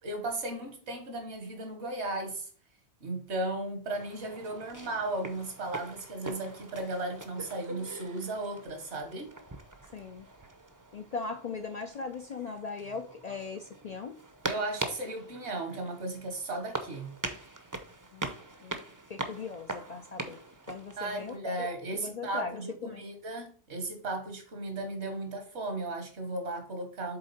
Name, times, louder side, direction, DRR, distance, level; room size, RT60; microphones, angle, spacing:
voice 1, 0.0-2.5 3.0-9.3 14.4-17.1 21.0-27.2, right 2 dB, 75° right, 1.7 m, -35 dB
sound 1, 3.9-21.4, right 2 dB, 20° right, 0.6 m, -42 dB
voice 2, 9.9-10.3 10.9-14.2 18.1-18.3 18.6-18.8 19.1-20.4 20.7-23.0, left 4 dB, 50° left, 0.5 m, -39 dB
7.8 x 3.7 x 4.2 m
omnidirectional pair, 1.2 m